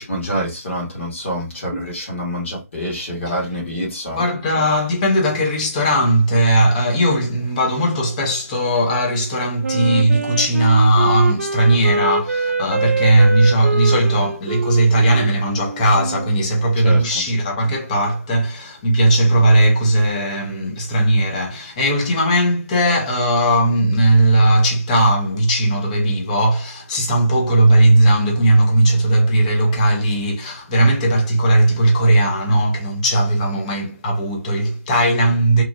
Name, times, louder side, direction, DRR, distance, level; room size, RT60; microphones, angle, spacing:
voice 1, 0.0-4.2 16.8-17.0, equal, 50° left, 1.5 m, -26 dB
voice 2, 4.1-35.6, right 1 dB, 25° left, 0.9 m, -17 dB
Wind instrument woodwind instrument, 9.6-16.4, right 3 dB, 70° right, 0.4 m, -24 dB
3.0 x 2.4 x 2.4 m
figure-of-eight pair, 150°, 8 cm